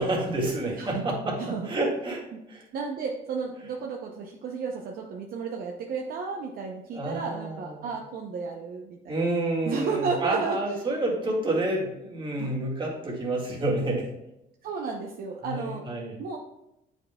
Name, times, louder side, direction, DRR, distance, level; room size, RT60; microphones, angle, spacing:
voice 1, 0.0-2.6 6.9-7.9 9.1-14.1 15.4-16.1, right 2 dB, 30° right, -3 dB, 1.9 m, -29 dB
voice 2, 1.4-1.7 2.3-2.4 2.7-9.2 9.7-10.6 12.4-12.5 14.6-15.8 16.2-16.4, right 5 dB, 60° right, 0 dB, 0.7 m, -33 dB
8.3 x 5.3 x 2.3 m, 0.86 s
cardioid pair, 110°, 17 cm